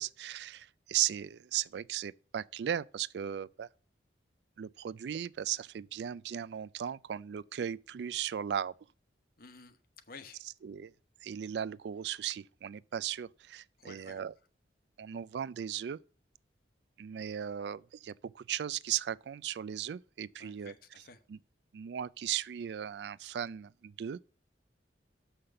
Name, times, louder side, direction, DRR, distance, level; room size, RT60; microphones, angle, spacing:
voice 1, 0.0-3.7 4.6-8.7 10.6-10.9 11.2-14.3 15.0-16.0 17.0-20.7 21.3-21.4 21.7-24.2, right 10 dB, 70° right, 0.3 m, -37 dB
voice 2, 9.4-9.8 10.1-10.4 13.8-14.2 20.4-21.2, left 4 dB, 55° left, 1.0 m, -52 dB
6.7 x 5.7 x 6.7 m
head